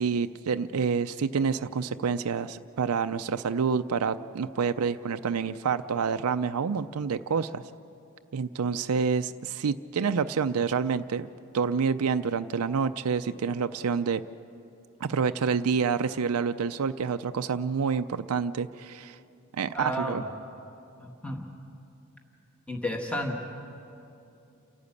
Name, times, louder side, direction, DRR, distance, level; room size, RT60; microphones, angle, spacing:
voice 1, 0.0-7.6 8.3-11.3 11.5-14.2 15.0-19.2 19.5-20.2, right 6 dB, 90° right, 9 dB, 0.5 m, -28 dB
voice 2, 19.7-20.2 21.0-21.4 22.7-23.4, equal, 5° left, 1 dB, 1.4 m, -32 dB
29.0 x 12.0 x 8.4 m, 2.7 s
head